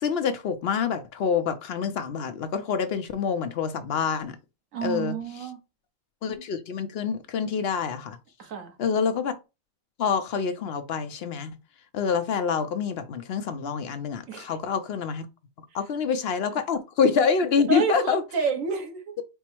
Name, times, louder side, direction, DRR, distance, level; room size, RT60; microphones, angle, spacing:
voice 1, 0.0-4.4 4.8-5.2 6.2-8.2 8.8-9.3 10.0-11.5 11.9-15.3 15.7-18.2, left 6 dB, 60° left, 0.7 m, -26 dB
voice 2, 4.7-5.6 8.4-8.8 14.3-14.6 16.5-16.6 17.7-19.1, right 6 dB, 90° right, 1.3 m, -29 dB
4.5 x 2.0 x 4.3 m
omnidirectional pair, 1.3 m